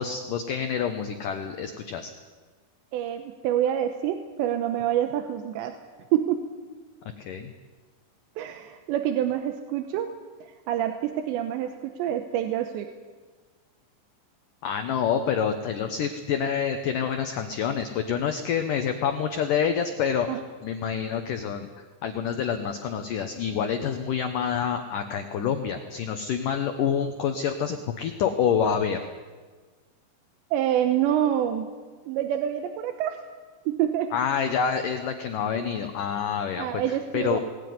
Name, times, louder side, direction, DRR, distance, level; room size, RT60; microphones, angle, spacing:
voice 1, 0.0-2.1 7.2-7.5 14.6-21.7 22.0-29.0 34.1-37.4, left 7 dB, 75° left, 6 dB, 1.9 m, -27 dB
voice 2, 2.9-5.8 6.1-6.4 8.4-10.1 10.4-12.9 20.3-20.4 30.5-31.7 32.1-33.2 33.7-34.1 35.5-35.6 36.6-37.4, right 11 dB, 80° right, 6 dB, 3.1 m, -27 dB
20.5 x 16.5 x 9.5 m, 1.4 s
omnidirectional pair, 5.3 m